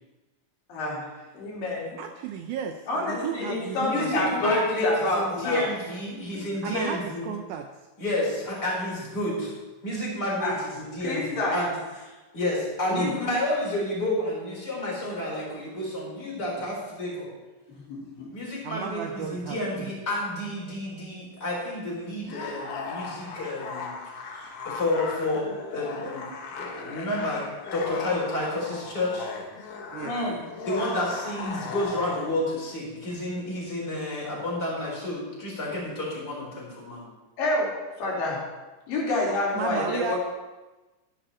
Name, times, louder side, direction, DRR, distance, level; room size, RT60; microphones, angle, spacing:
voice 1, 0.7-2.0 2.9-5.7 6.3-6.4 10.4-10.6 11.0-11.6 12.9-13.1 17.7-18.3 30.0-30.4 37.4-38.5 38.9-40.2, left 2 dB, 75° left, -4 dB, 4.6 m, -28 dB
voice 2, 2.0-2.8 3.1-4.7 6.6-7.7 18.6-19.9 29.9-30.2 39.6-40.2, right 7 dB, 75° right, 5 dB, 1.9 m, -34 dB
voice 3, 3.8-7.3 8.0-9.5 9.8-11.7 12.0-12.1 12.3-17.3 18.3-23.9 24.3-26.3 26.6-29.3 30.7-37.1, left 1 dB, 25° left, -4 dB, 5.0 m, -30 dB
sound 1, 22.2-32.4, left 4 dB, 60° left, 2.2 m, -37 dB
13.5 x 11.0 x 4.4 m, 1.1 s
omnidirectional pair, 4.0 m